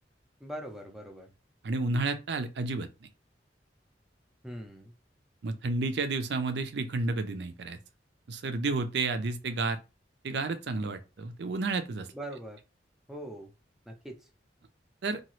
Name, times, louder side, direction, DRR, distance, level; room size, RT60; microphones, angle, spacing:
voice 1, 0.4-1.3 4.4-4.9 12.1-12.6 13.1-13.5 13.9-14.3, right 1 dB, ahead, 0.5 m, -42 dB
voice 2, 1.6-3.1 5.4-7.8 8.3-9.8 10.2-12.1 15.0-15.2, right 3 dB, 65° right, 0.5 m, -31 dB
2.9 x 2.3 x 3.0 m
head